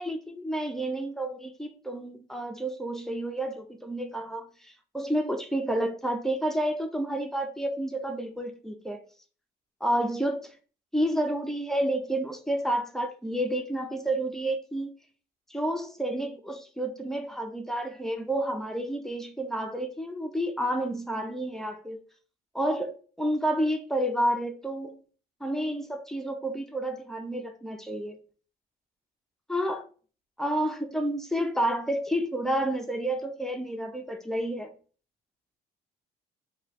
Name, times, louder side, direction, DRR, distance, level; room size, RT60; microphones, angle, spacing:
voice 1, 0.0-9.0 9.8-10.5 10.9-14.9 15.5-22.0 22.5-25.0 25.4-28.2 29.5-29.9 30.4-34.7, right 1 dB, ahead, 0.5 m, -30 dB
3.1 x 2.3 x 4.1 m
cardioid pair, 110°, 17 cm